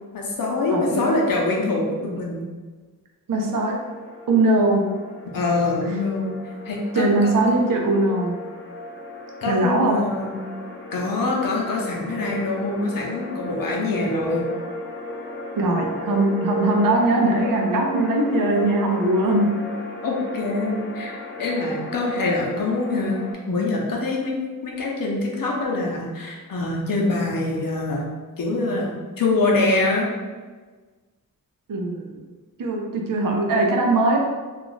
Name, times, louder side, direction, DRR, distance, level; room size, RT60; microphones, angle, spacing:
voice 1, 0.1-2.4 5.3-6.3 6.7-7.4 9.4-10.4 10.9-14.4 20.0-24.4 24.6-28.1 28.4-30.1, left 2 dB, 75° left, -2 dB, 0.7 m, -24 dB
voice 2, 0.7-1.0 3.3-3.8 4.3-4.9 6.9-8.4 9.5-10.0 15.6-19.6 31.7-32.1 32.6-34.2, right 2 dB, 70° right, 0 dB, 0.6 m, -20 dB
sound 1, 3.4-23.3, left 1 dB, 35° left, 0.5 m, -35 dB
2.5 x 2.3 x 3.9 m, 1.4 s
wide cardioid pair, 135°, 34 cm